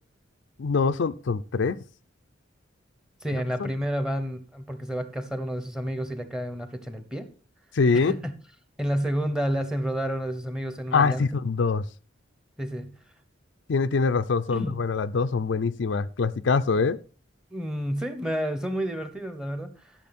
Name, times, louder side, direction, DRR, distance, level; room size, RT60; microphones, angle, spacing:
voice 1, 0.6-1.8 3.6-3.7 7.7-8.1 10.9-11.8 13.7-17.0, left 4 dB, 70° left, 0.5 m, -24 dB
voice 2, 3.2-7.3 7.9-8.3 8.8-11.3 12.6-12.9 14.5-14.8 17.5-19.9, equal, 5° right, 1.0 m, -30 dB
12.0 x 6.5 x 4.2 m
head